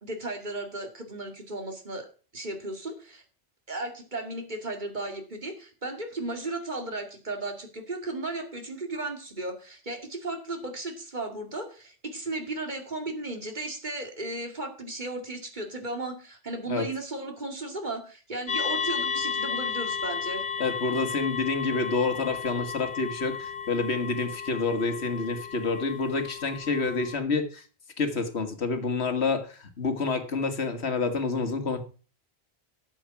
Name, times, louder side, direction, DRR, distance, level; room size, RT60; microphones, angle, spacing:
voice 1, 0.0-2.1 2.3-3.2 3.7-20.4, right 2 dB, 45° right, 4 dB, 2.4 m, -35 dB
sound 1, 18.5-27.2, left 6 dB, 55° left, 1.2 m, -33 dB
voice 2, 20.6-27.6 28.0-31.8, left 4 dB, 85° left, 8 dB, 1.9 m, -28 dB
12.5 x 7.3 x 5.9 m, 0.38 s
omnidirectional pair, 1.1 m